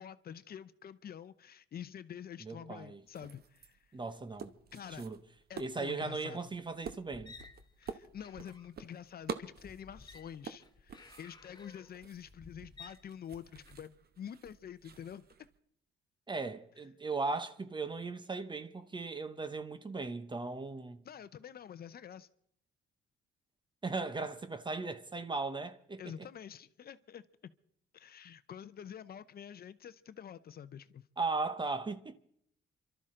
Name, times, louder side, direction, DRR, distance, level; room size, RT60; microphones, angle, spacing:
voice 1, 0.0-3.8 4.7-5.1 5.5-6.4 7.8-15.2 21.0-22.3 26.0-27.5 27.9-31.0, left 9 dB, 50° left, 0.7 m, -47 dB
voice 2, 2.4-3.0 3.9-4.5 4.9-5.2 5.6-7.3 16.3-21.0 23.8-26.3 31.2-32.1, right 3 dB, 25° right, 0.8 m, -37 dB
sound 1, 3.1-15.6, right 6 dB, 50° right, 1.0 m, -49 dB
sound 2, 7.1-13.7, left 4 dB, 20° left, 1.1 m, -55 dB
28.0 x 12.5 x 3.8 m
cardioid pair, 90°, 20 cm